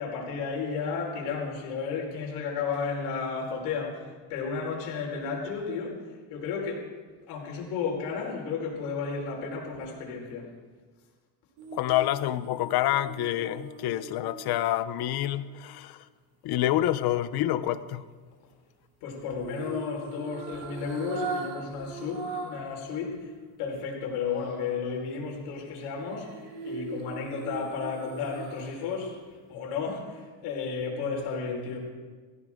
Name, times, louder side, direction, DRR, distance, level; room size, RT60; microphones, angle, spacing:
voice 1, 0.0-6.0 6.3-6.8 7.3-10.5 19.0-23.3 23.6-29.2 29.5-31.8, left 5 dB, 80° left, -1 dB, 4.8 m, -33 dB
sound 1, 11.6-15.8 19.4-22.8 23.1-23.2 26.1-29.0 29.3-29.4, right 4 dB, 70° right, 2.3 m, -40 dB
voice 2, 11.7-16.0 16.4-18.1, left 13 dB, 55° left, 14 dB, 0.9 m, -27 dB
17.5 x 15.5 x 3.7 m, 1.4 s
supercardioid pair, 110°, 45 cm